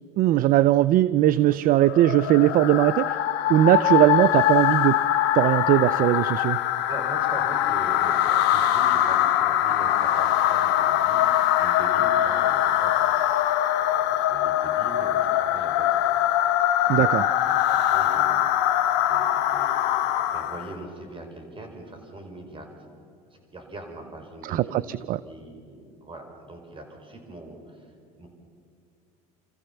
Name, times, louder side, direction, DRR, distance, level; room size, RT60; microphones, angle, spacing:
voice 1, 0.2-3.2 3.5-5.0 5.3-6.6 16.9-17.3 24.5-25.2, right 14 dB, 50° right, 18 dB, 0.5 m, -20 dB
sound 1, 1.8-20.7, left 12 dB, 65° left, 1.1 m, -23 dB
voice 2, 6.8-16.0 16.6-22.7 23.3-28.3, right 1 dB, 25° right, 4 dB, 5.0 m, -41 dB
27.0 x 14.5 x 7.1 m, 2.5 s
hypercardioid pair, 85°, 19 cm